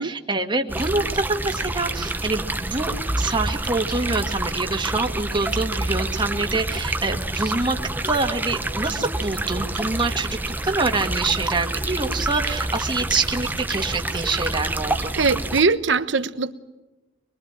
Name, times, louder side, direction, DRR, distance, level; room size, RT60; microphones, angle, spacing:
voice 1, 0.0-7.8 8.0-15.2, right 3 dB, 25° right, 4 dB, 1.9 m, -26 dB
sound 1, 0.7-15.6, right 2 dB, 10° right, 0.9 m, -27 dB
voice 2, 15.1-16.5, right 4 dB, 90° right, 12 dB, 1.1 m, -21 dB
24.5 x 22.5 x 8.9 m, 1.1 s
head